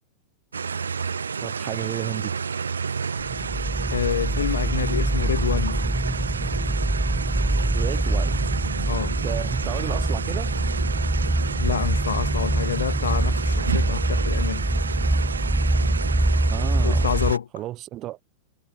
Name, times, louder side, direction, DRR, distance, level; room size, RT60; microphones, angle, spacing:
sound 1, 0.5-17.4, right 6 dB, 75° right, 0.5 m, -31 dB
voice 1, 1.4-2.3 7.7-8.4 9.2-10.5 16.5-17.1 17.5-18.2, right 15 dB, 35° right, 2.9 m, -32 dB
sound 2, 3.2-17.3, right 1 dB, 5° right, 0.6 m, -24 dB
voice 2, 3.9-5.8 8.8-9.2 11.6-14.6 16.8-17.5, left 8 dB, 65° left, 0.8 m, -27 dB
figure-of-eight pair, 90°, 0 cm